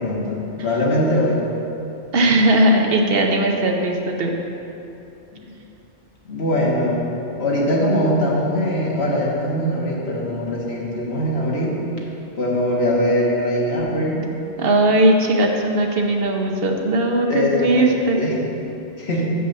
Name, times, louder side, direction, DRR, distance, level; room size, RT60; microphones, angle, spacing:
voice 1, 0.0-1.4 5.3-5.5 6.2-7.0 7.4-11.8 12.4-14.3 17.3-18.3 19.0-19.3, equal, 60° left, -4 dB, 1.6 m, -21 dB
voice 2, 2.1-4.3 14.6-18.3, right 1 dB, 55° right, 2 dB, 1.0 m, -18 dB
6.6 x 5.5 x 6.7 m, 2.9 s
omnidirectional pair, 1.2 m